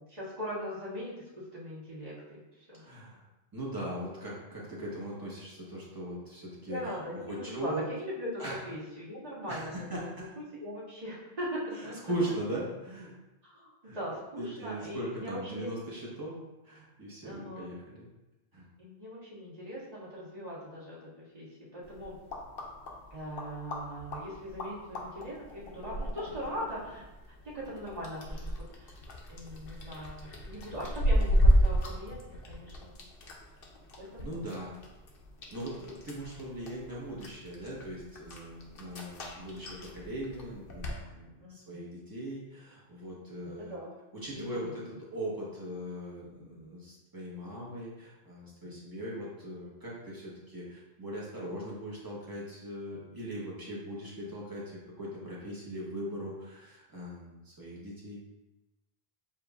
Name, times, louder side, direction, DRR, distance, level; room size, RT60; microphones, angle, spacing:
voice 1, 0.0-2.8 6.7-10.1 10.4-12.1 13.4-15.7 17.2-17.7 18.8-22.2 23.1-27.0 27.4-29.0 29.3-32.2 32.5-32.9 34.0-34.4 41.4-41.9 43.4-43.9 44.3-44.9 48.6-48.7, equal, 35° right, -9 dB, 1.6 m, -40 dB
voice 2, 2.8-3.2 3.5-6.8 7.1-7.8 8.4-8.6 9.5-10.3 12.0-13.1 13.8-14.0 14.4-16.4 16.6-18.1 18.5-18.6 34.2-34.8 35.5-43.7 44.1-58.2, right 1 dB, 20° right, -6 dB, 1.2 m, -39 dB
tongue stuff, 21.8-41.0, equal, 60° left, 0.9 m, -33 dB
7.3 x 2.6 x 2.4 m, 1.0 s
omnidirectional pair, 1.1 m